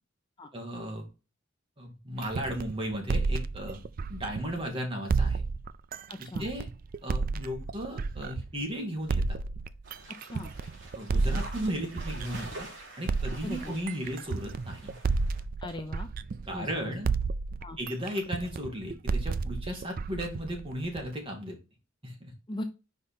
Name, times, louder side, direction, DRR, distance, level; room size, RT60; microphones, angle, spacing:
voice 1, 0.5-1.0 1.8-3.8 4.1-5.4 6.2-6.7 7.0-9.4 10.9-12.7 13.0-14.9 16.5-17.1 17.8-21.6 22.0-22.3, equal, 25° right, 1 dB, 2.0 m, -35 dB
sound 1, 2.2-4.6 5.1-8.6 9.1-12.6 13.1-16.7 17.0-21.1, right 4 dB, 45° right, 0.3 m, -31 dB
voice 2, 6.1-6.5 10.3-10.5 13.4-13.6 15.6-16.1 16.5-16.9 17.6-17.8 22.5-22.6, left 1 dB, 25° left, 7 dB, 0.6 m, -39 dB
sound 2, 9.8-15.4, right 2 dB, 65° right, 2.9 m, -47 dB
5.4 x 4.9 x 4.2 m, 0.30 s
head